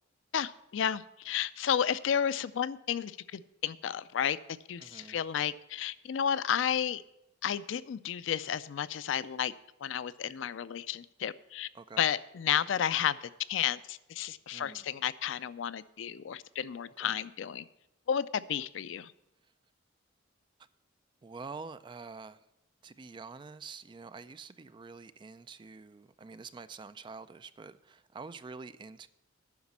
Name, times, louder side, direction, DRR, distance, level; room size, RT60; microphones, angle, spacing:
voice 1, 0.3-4.4 4.7-7.0 7.4-9.5 9.8-11.7 12.0-13.2 13.5-17.7 18.1-19.1, left 9 dB, 70° left, 16 dB, 0.4 m, -32 dB
voice 2, 4.8-5.2 11.7-12.0 14.5-14.9 17.0-17.1 21.2-22.4 22.8-29.1, right 4 dB, 25° right, 13 dB, 0.3 m, -47 dB
9.5 x 6.0 x 7.1 m, 0.87 s
head